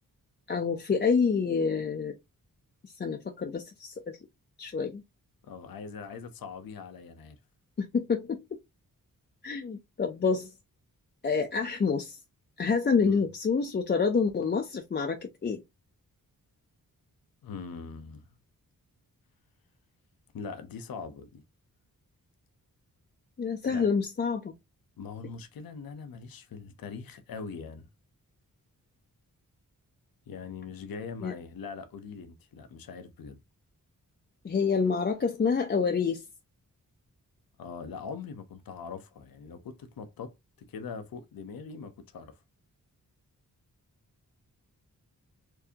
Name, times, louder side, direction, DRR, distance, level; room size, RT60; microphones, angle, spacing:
voice 1, 0.5-2.2 2.8-4.2 4.6-5.0 7.8-8.4 9.4-10.5 11.2-12.2 12.6-15.6 23.4-24.5 31.2-31.3 34.4-36.3, left 5 dB, 30° left, 0.4 m, -27 dB
voice 2, 5.4-7.4 13.0-13.2 17.4-18.2 20.3-21.4 23.7-23.9 25.0-27.9 30.3-33.4 37.6-42.4, left 5 dB, 80° left, 0.7 m, -42 dB
4.5 x 2.7 x 2.7 m
wide cardioid pair, 160°, 35 cm